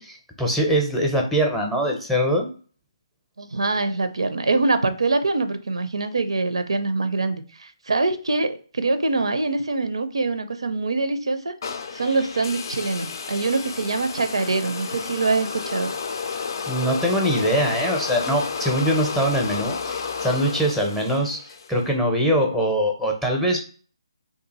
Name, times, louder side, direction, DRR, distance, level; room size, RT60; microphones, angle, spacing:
voice 1, 0.0-2.5 16.7-23.6, equal, 5° left, 0 dB, 0.6 m, -23 dB
voice 2, 3.4-11.5 11.9-15.9, right 3 dB, 75° right, 11 dB, 0.4 m, -24 dB
sound 1, 11.6-21.8, left 5 dB, 50° left, 0.4 m, -31 dB
2.7 x 2.4 x 4.0 m, 0.41 s
figure-of-eight pair, 150°, 3 cm